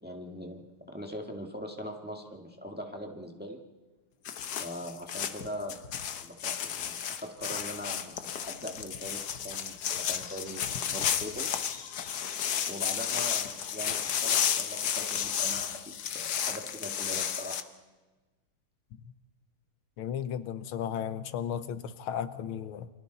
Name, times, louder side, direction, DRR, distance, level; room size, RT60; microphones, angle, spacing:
voice 1, 0.0-3.6 4.6-5.8 6.2-11.5 12.7-17.7, equal, 5° right, 1 dB, 1.6 m, -41 dB
sound 1, 4.2-17.6, left 8 dB, 60° left, 1.4 m, -32 dB
voice 2, 20.0-22.9, left 8 dB, 85° left, 12 dB, 1.7 m, -34 dB
28.5 x 25.0 x 4.1 m, 1.2 s
omnidirectional pair, 2.3 m